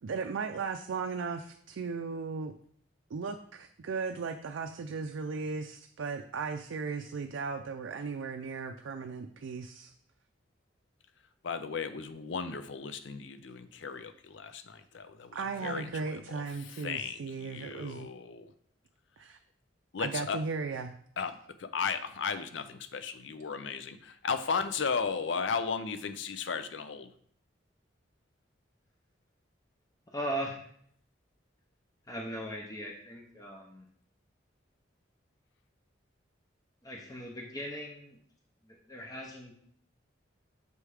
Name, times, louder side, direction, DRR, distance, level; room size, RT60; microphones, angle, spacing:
voice 1, 0.0-2.5 3.1-9.9 15.3-18.1 19.2-19.4 20.0-21.0, right 4 dB, 80° right, 5 dB, 0.4 m, -36 dB
voice 2, 11.4-15.9 16.3-16.4 16.7-18.5 19.9-20.4 21.2-27.1, left 5 dB, 70° left, 11 dB, 0.5 m, -35 dB
voice 3, 30.1-30.7 32.1-33.9 36.8-38.2 38.6-39.6, right 1 dB, 20° left, -1 dB, 0.7 m, -39 dB
6.8 x 3.3 x 4.8 m, 0.62 s
head